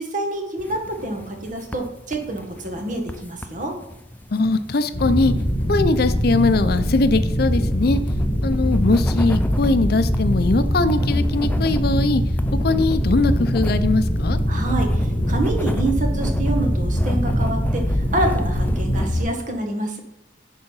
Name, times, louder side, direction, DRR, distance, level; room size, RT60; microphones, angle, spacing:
voice 1, 0.0-3.7 14.5-20.0, right 2 dB, 50° right, 3 dB, 1.5 m, -27 dB
sound 1, 0.6-19.2, left 1 dB, 10° left, 0.6 m, -35 dB
voice 2, 4.3-5.3 5.7-8.0 8.4-12.2 12.6-14.4, left 3 dB, 60° left, 11 dB, 0.5 m, -21 dB
sound 2, 4.9-19.2, equal, 45° left, 2.3 m, -22 dB
10.5 x 3.8 x 5.6 m, 0.92 s
head